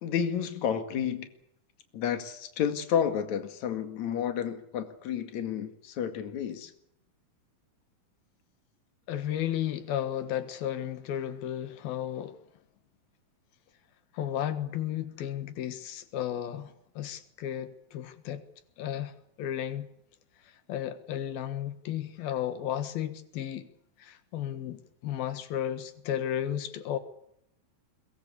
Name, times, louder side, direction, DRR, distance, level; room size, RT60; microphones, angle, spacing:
voice 1, 0.0-1.3 1.9-6.7, left 8 dB, 55° left, 3.2 m, -31 dB
voice 2, 9.1-12.4 14.1-18.4 18.8-19.9 20.4-23.7 24.0-27.0, left 10 dB, 85° left, 3.3 m, -34 dB
23.0 x 19.5 x 8.4 m
omnidirectional pair, 4.2 m